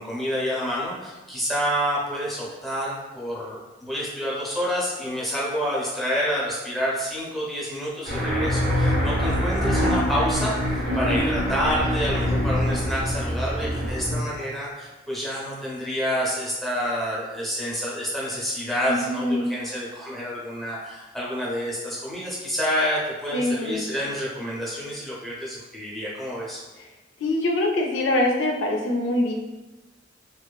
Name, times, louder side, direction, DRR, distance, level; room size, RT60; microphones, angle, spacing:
voice 1, 0.0-26.6, equal, ahead, -7 dB, 0.6 m, -28 dB
sound 1, 8.0-14.2, equal, 45° right, 0.7 m, -24 dB
voice 2, 10.9-11.2 18.9-19.5 23.3-23.8 27.2-29.3, left 1 dB, 90° left, 1 dB, 0.5 m, -24 dB
2.5 x 2.3 x 2.2 m, 1.1 s
head